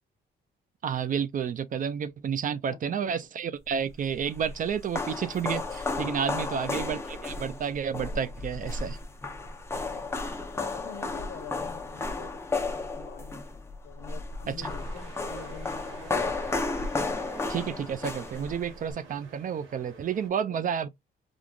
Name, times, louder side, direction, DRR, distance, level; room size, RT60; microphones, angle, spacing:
voice 1, 0.8-9.0 14.5-14.7 17.5-20.9, right 7 dB, 45° right, 0.4 m, -31 dB
voice 2, 2.5-3.0 6.4-6.8 9.9-13.4 13.8-16.3 20.5-20.9, left 8 dB, 60° left, 0.8 m, -46 dB
sound 1, 3.9-18.9, left 3 dB, 15° left, 0.6 m, -33 dB
sound 2, 14.6-20.3, right 4 dB, 80° right, 1.0 m, -49 dB
3.5 x 2.4 x 2.3 m
cardioid pair, 90°, 20 cm